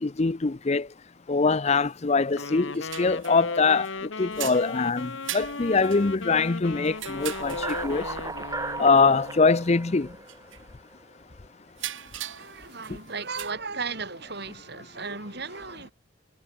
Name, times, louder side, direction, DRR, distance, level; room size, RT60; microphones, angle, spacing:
voice 1, 0.0-0.9 1.3-3.9 4.2-7.5 7.8-8.1 8.8-10.1, left 4 dB, 35° left, 0.6 m, -23 dB
sound 1, 1.8-1.9 2.4-3.9 4.3-8.1 9.0-9.1 9.4-9.6 10.3-10.6 11.7-13.5, right 12 dB, 75° right, 1.8 m, -39 dB
Wind instrument woodwind instrument, 2.3-9.5, left 3 dB, 75° left, 1.8 m, -36 dB
sound 2, 6.9-11.2, right 3 dB, 15° right, 1.9 m, -36 dB
voice 2, 12.4-15.9, right 4 dB, 55° right, 3.8 m, -35 dB
head